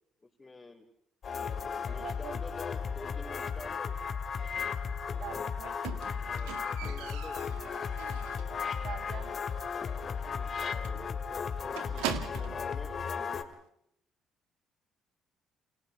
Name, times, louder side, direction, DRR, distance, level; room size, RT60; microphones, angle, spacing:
voice 1, 0.2-0.9 1.4-4.0 6.2-7.5 9.7-13.5, left 3 dB, 25° left, -4 dB, 4.3 m, -48 dB
sound 1, 1.2-13.4, left 6 dB, 50° left, 2.3 m, -35 dB
voice 2, 2.0-2.4 5.2-5.9 8.8-9.4, right 10 dB, 70° right, 11 dB, 1.6 m, -44 dB
Squeak, 5.8-8.6 8.9-9.3 9.6-9.7 10.1-10.2 10.5-10.6 10.8-12.7 13.5-13.6, right 11 dB, 85° right, 1.8 m, -41 dB
29.5 x 28.0 x 3.5 m, 0.70 s
supercardioid pair, 60°, 0 cm